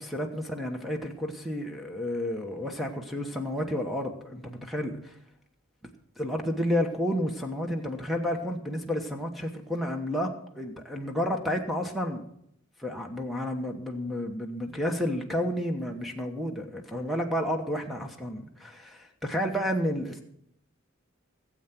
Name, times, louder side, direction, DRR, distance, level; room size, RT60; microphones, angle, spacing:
voice 1, 0.1-5.1 6.2-12.2 12.8-20.2, equal, ahead, 3 dB, 1.1 m, -31 dB
16.5 x 7.9 x 5.9 m, 0.74 s
head